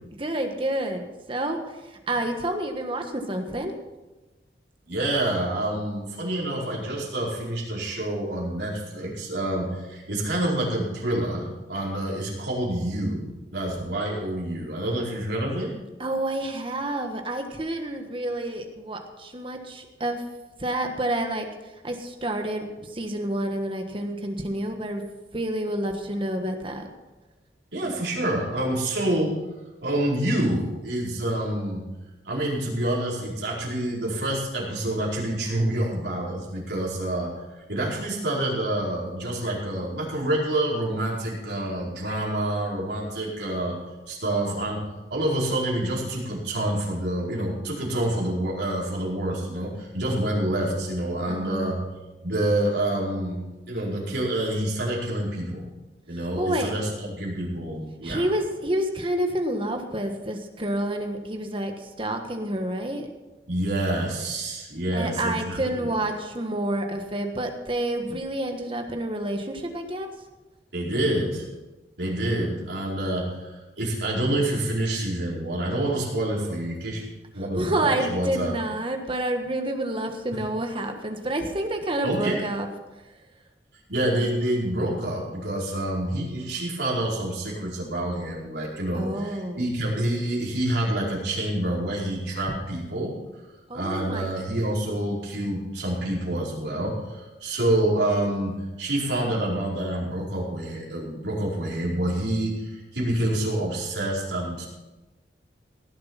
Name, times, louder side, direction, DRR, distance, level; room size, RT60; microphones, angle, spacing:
voice 1, 0.2-3.7 16.0-20.2 20.6-25.0 25.3-26.9 51.3-51.7 56.4-56.7 58.0-63.1 64.9-70.1 77.4-82.7 88.9-89.7 92.5-92.6 93.7-94.5, right 1 dB, 30° right, 5 dB, 1.4 m, -29 dB
voice 2, 4.9-15.7 27.7-29.3 29.8-31.9 32.2-37.3 37.7-43.8 44.1-51.8 52.2-53.4 53.7-55.7 56.1-58.2 63.5-65.9 70.7-71.5 72.0-77.1 77.3-78.5 82.0-82.4 83.9-93.5 93.7-104.7, right 1 dB, 75° right, -5 dB, 4.8 m, -27 dB
18.0 x 7.7 x 5.8 m, 1.1 s
head